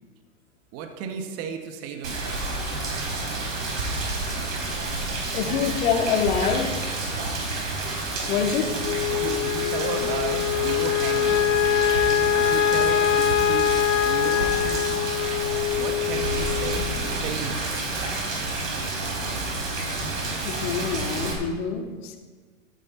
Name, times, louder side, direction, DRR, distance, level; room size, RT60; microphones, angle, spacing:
voice 1, 0.7-2.4 9.1-11.4 12.4-13.7 14.0-15.1 15.8-17.8, right 6 dB, 35° right, 5 dB, 1.8 m, -34 dB
Rain, 2.0-21.3, right 2 dB, 70° right, 4.3 m, -29 dB
voice 2, 5.3-6.7 8.3-8.7 20.4-22.2, left 7 dB, 50° left, 3 dB, 2.3 m, -25 dB
Wind instrument woodwind instrument, 8.8-17.3, left 10 dB, 65° left, 1.0 m, -24 dB
14.5 x 12.0 x 4.3 m, 1.5 s
hypercardioid pair, 105°, 40 cm